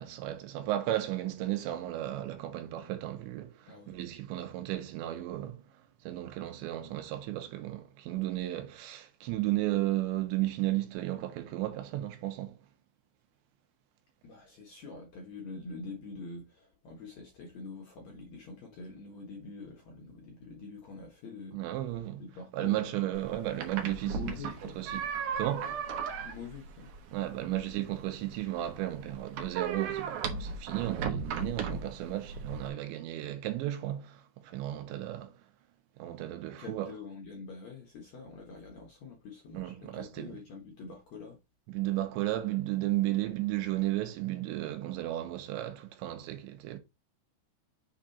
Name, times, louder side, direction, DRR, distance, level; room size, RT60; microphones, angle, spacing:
voice 1, 0.0-5.7 6.0-12.6 21.5-22.2 22.5-25.1 25.4-25.8 27.1-35.3 36.0-36.9 39.5-40.4 41.7-46.8, right 14 dB, 90° right, 3.3 m, -34 dB
voice 2, 3.7-4.0 14.2-21.6 22.2-22.9 24.0-24.8 26.2-26.9 36.6-41.4, left 4 dB, 75° left, 1.6 m, -45 dB
sound 1, 23.1-32.7, right 6 dB, 70° right, 1.9 m, -37 dB
7.3 x 3.7 x 4.1 m
omnidirectional pair, 5.1 m